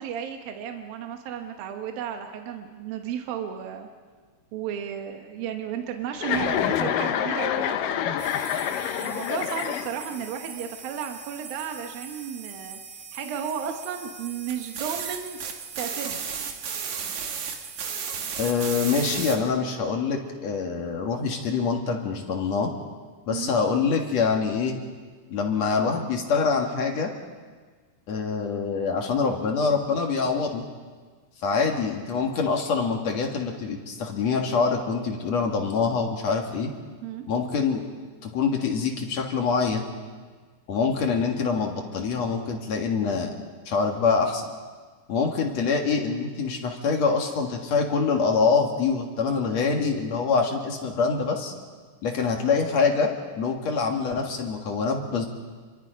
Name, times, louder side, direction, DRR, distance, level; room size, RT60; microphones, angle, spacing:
voice 1, 0.0-3.9 4.5-7.8 8.9-12.8 13.1-15.4 15.8-16.2 23.3-23.5 37.0-37.2, right 8 dB, 75° right, 5 dB, 2.9 m, -33 dB
Chuckle chortle, 6.2-10.2, left 9 dB, 75° left, 2.4 m, -27 dB
sound 1, 8.2-19.4, right 6 dB, 55° right, 2.7 m, -36 dB
voice 2, 18.4-22.7 23.3-24.8 25.3-27.1 28.1-30.6 31.4-36.7 37.3-37.8 38.2-39.9 40.7-43.3 43.7-44.5 45.1-51.5 52.0-53.1 53.3-55.3, left 5 dB, 50° left, 2 dB, 2.8 m, -25 dB
28.5 x 23.0 x 5.2 m, 1.5 s
omnidirectional pair, 4.3 m